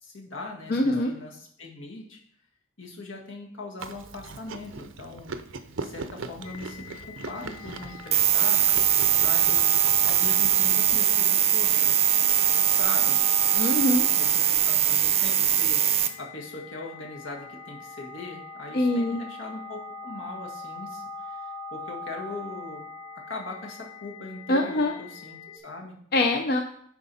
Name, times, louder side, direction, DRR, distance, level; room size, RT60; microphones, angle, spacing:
voice 1, 0.0-2.2 2.8-5.3 5.8-8.6 9.2-11.9 12.7-13.2 14.2-21.4 21.7-22.9 23.3-26.0, left 3 dB, 80° left, -1 dB, 1.9 m, -40 dB
voice 2, 0.7-1.1 13.5-14.1 18.7-19.2 24.5-24.9 26.1-26.6, left 1 dB, 50° left, 3 dB, 0.6 m, -23 dB
Chewing mastication, 3.8-11.0, right 4 dB, 85° right, 0.7 m, -40 dB
sound 1, 6.4-25.6, left 3 dB, 25° left, 1.3 m, -42 dB
sound 2, 8.1-16.1, right 11 dB, 30° right, 0.6 m, -21 dB
10.0 x 4.8 x 4.2 m, 0.64 s
head